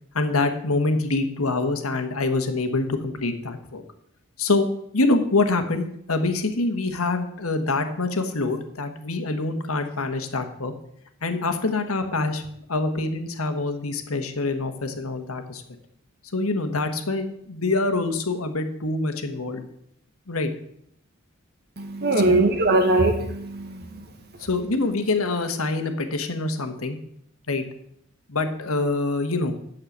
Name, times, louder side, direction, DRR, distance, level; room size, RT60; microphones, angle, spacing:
voice 1, 0.1-3.8 4.4-4.7 4.9-10.7 11.2-15.6 16.3-19.6 20.3-20.5 22.2-22.4 24.4-27.0 27.5-27.6 28.3-29.5, left 3 dB, 80° left, 7 dB, 1.4 m, -25 dB
voice 2, 21.8-24.5, right 2 dB, 50° right, 5 dB, 1.3 m, -22 dB
8.8 x 6.7 x 8.0 m, 0.73 s
head